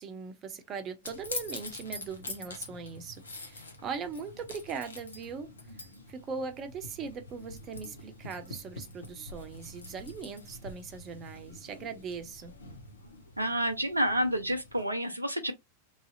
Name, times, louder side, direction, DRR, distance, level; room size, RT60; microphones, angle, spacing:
voice 1, 0.0-5.8 6.1-12.5, right 5 dB, 30° right, 0.7 m, -40 dB
sound 1, 1.0-14.8, left 2 dB, 75° left, 0.8 m, -45 dB
voice 2, 13.4-15.5, equal, 85° right, 0.4 m, -29 dB
3.1 x 2.7 x 2.6 m
figure-of-eight pair, 90°, 0 cm